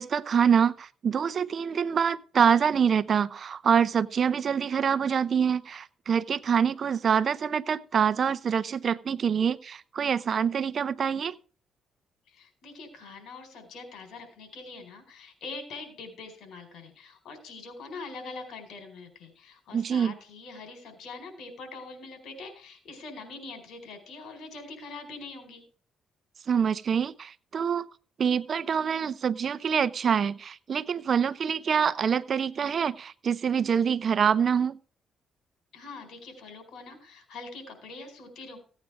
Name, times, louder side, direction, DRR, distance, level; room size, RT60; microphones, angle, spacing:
voice 1, 0.0-11.3 19.7-20.1 26.5-27.9 28.2-34.8, right 7 dB, 50° right, 16 dB, 0.7 m, -25 dB
voice 2, 12.3-25.6 35.7-38.6, left 3 dB, 75° left, 6 dB, 4.5 m, -43 dB
16.5 x 9.1 x 3.5 m, 0.39 s
cardioid pair, 90°, 0 cm